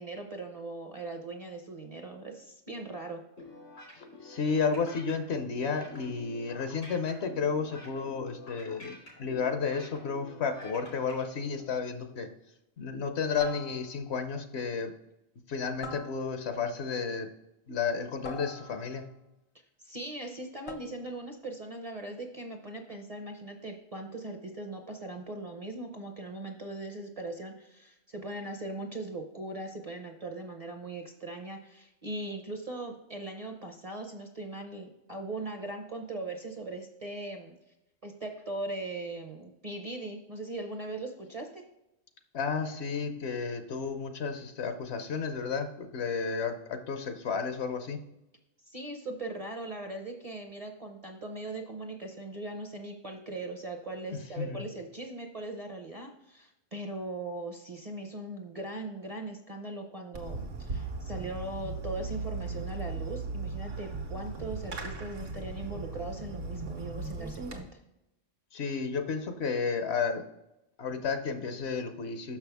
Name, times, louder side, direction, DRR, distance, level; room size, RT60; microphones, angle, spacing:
voice 1, 0.0-3.2 19.8-37.6 38.0-41.6 48.7-67.7, right 2 dB, 35° right, 4 dB, 0.7 m, -40 dB
sound 1, 3.4-11.2, left 2 dB, 85° left, 3.2 m, -48 dB
voice 2, 4.0-12.3 12.8-14.9 15.5-17.3 17.7-19.1 42.3-48.0 54.1-54.7 68.5-70.3 70.8-72.4, left 5 dB, 60° left, 7 dB, 0.9 m, -32 dB
sound 2, 11.6-11.9 13.4-14.2 15.8-16.7 18.2-19.2 20.7-21.3, left 3 dB, 35° left, 0.6 m, -44 dB
Fireworks, 60.1-67.6, right 3 dB, 75° right, 1.4 m, -37 dB
6.2 x 6.0 x 3.4 m, 0.89 s
omnidirectional pair, 1.3 m